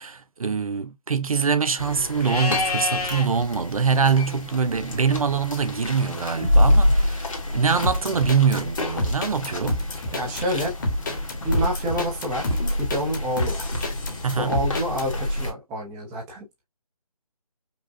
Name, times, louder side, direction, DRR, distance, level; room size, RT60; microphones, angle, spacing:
voice 1, 0.0-9.8 14.2-14.6, right 6 dB, 65° right, 0.7 m, -24 dB
sound 1, 1.8-15.5, left 1 dB, 60° left, 1.5 m, -27 dB
Livestock farm animals working animals, 2.2-3.3 6.1-7.1, left 3 dB, 75° left, 1.8 m, -29 dB
sound 2, 7.8-15.1, left 1 dB, 30° left, 1.3 m, -28 dB
voice 2, 10.1-10.8 11.4-13.8 14.4-16.6, equal, 5° right, 0.7 m, -28 dB
5.3 x 2.3 x 2.6 m
figure-of-eight pair, 160°, 19 cm